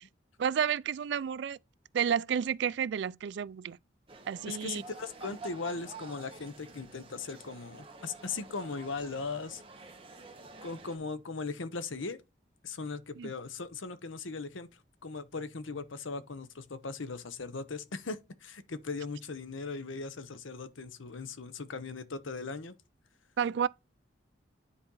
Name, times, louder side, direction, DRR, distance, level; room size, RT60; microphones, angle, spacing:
voice 1, 0.4-1.6 1.9-3.8 4.3-4.8 13.2-13.3 23.4-23.7, right 8 dB, 60° right, 0.3 m, -31 dB
sound 1, 4.1-11.0, right 3 dB, 30° right, 1.2 m, -49 dB
voice 2, 4.4-9.6 10.6-12.2 12.6-14.7 15.0-22.8, left 4 dB, 80° left, 0.9 m, -39 dB
10.0 x 4.2 x 3.9 m
head